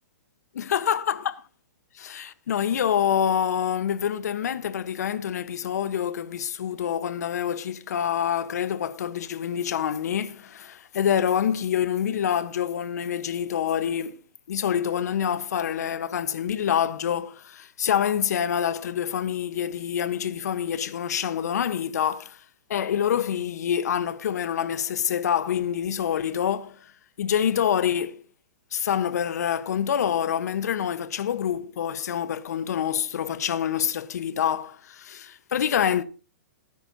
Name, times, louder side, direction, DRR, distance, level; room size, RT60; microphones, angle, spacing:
voice 1, 0.6-1.2 1.9-14.2 14.5-22.4 22.7-26.9 27.2-28.2 28.7-36.0, left 9 dB, 65° left, 1.1 m, -26 dB
18.5 x 9.9 x 2.8 m
hypercardioid pair, 165°, 9 cm